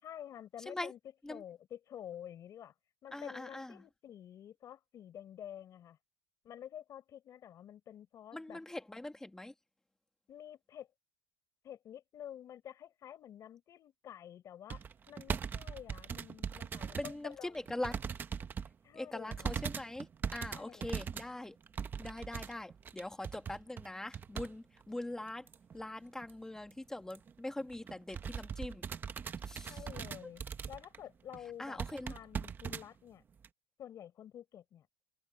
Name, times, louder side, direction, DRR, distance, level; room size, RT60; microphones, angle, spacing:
voice 1, 0.0-1.0 1.3-2.7 3.0-6.0 6.4-8.6 10.3-10.9 11.6-17.9 18.8-19.5 20.5-21.0 29.7-30.4 30.7-31.8 32.1-33.2 33.8-34.9, left 10 dB, 30° left, 4.9 m, -49 dB
voice 2, 3.1-3.8 8.3-9.5 17.0-18.0 18.9-21.6 22.0-25.5 25.7-28.8 29.5-29.8 30.2-30.3 31.6-32.1, left 1 dB, 5° left, 1.5 m, -42 dB
sound 1, 14.7-17.2 17.5-18.7 19.3-24.5 24.8-24.9 25.5-25.8 26.2-26.3 26.6-26.7 27.1-27.3 27.7-31.0 31.3-31.4 31.8-32.8 33.4-33.5, right 7 dB, 15° right, 0.7 m, -40 dB
cardioid pair, 170°, 12 cm